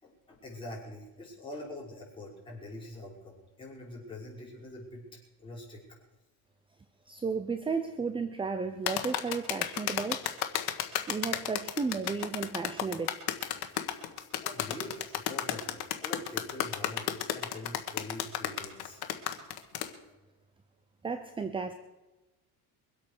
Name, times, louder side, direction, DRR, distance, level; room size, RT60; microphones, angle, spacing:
voice 1, 0.0-5.0 5.4-5.8 14.4-17.0 17.3-19.0, left 2 dB, 15° left, 5.4 m, -44 dB
voice 2, 7.1-10.3 11.1-13.2 21.0-21.7, right 5 dB, 15° right, 0.6 m, -33 dB
sound 1, 8.9-19.9, left 12 dB, 75° left, 1.6 m, -32 dB
23.0 x 8.4 x 6.6 m
cardioid pair, 155°, 38 cm